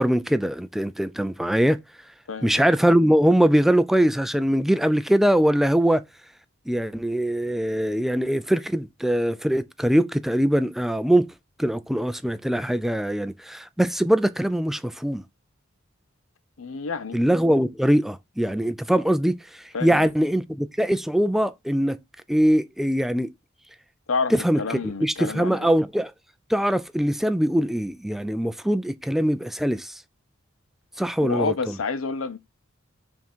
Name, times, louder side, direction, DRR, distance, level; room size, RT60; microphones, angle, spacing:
voice 1, 0.0-1.8 2.4-6.0 6.7-11.3 11.6-15.2 17.1-19.4 19.8-22.0 22.3-23.3 24.3-26.1 26.5-30.0 31.0-31.5, equal, ahead, 0.3 m, -22 dB
voice 2, 2.3-2.6 16.6-17.2 19.7-20.1 24.1-25.7 31.2-32.4, left 4 dB, 80° left, 0.6 m, -29 dB
5.9 x 3.6 x 4.4 m
head